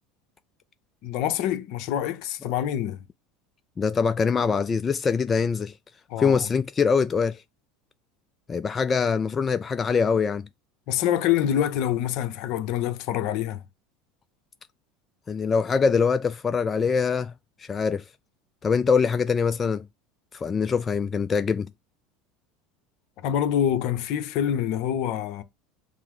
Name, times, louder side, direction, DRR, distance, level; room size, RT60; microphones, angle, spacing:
voice 1, 1.0-3.0 6.1-6.5 10.9-13.6 23.2-25.4, left 10 dB, 60° left, 0.7 m, -26 dB
voice 2, 3.8-5.7 6.2-7.4 8.5-10.5 15.3-17.3 17.6-18.0 18.6-19.8 20.3-21.7, left 5 dB, 25° left, 0.3 m, -23 dB
5.5 x 2.0 x 4.8 m
hypercardioid pair, 90°, 0 cm